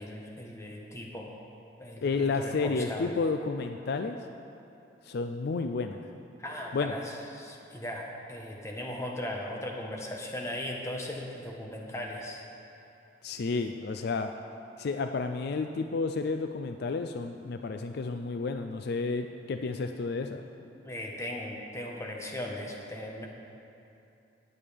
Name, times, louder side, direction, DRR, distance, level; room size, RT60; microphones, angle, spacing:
voice 1, 0.0-1.4 1.8-3.1 6.4-12.4 20.8-23.3, left 1 dB, 15° left, -1 dB, 1.2 m, -38 dB
voice 2, 2.0-4.2 5.1-6.0 6.7-6.9 13.2-14.3 14.8-20.5, left 4 dB, 60° left, 6 dB, 0.4 m, -31 dB
17.0 x 9.3 x 3.5 m, 2.7 s
head